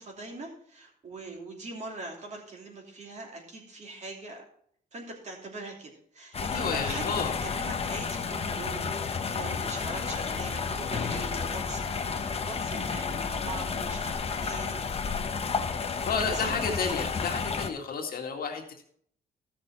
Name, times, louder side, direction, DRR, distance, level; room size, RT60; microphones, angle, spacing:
voice 1, 0.0-4.4 4.9-14.9 15.8-15.9 16.3-17.0 17.9-18.0, right 2 dB, 45° right, 0 dB, 2.9 m, -42 dB
sound 1, 6.3-17.7, left 5 dB, 35° left, 1.0 m, -31 dB
voice 2, 6.5-7.3 16.1-18.8, left 5 dB, 60° left, 2 dB, 2.0 m, -31 dB
14.5 x 6.5 x 4.3 m, 0.62 s
cardioid pair, 135°, 17 cm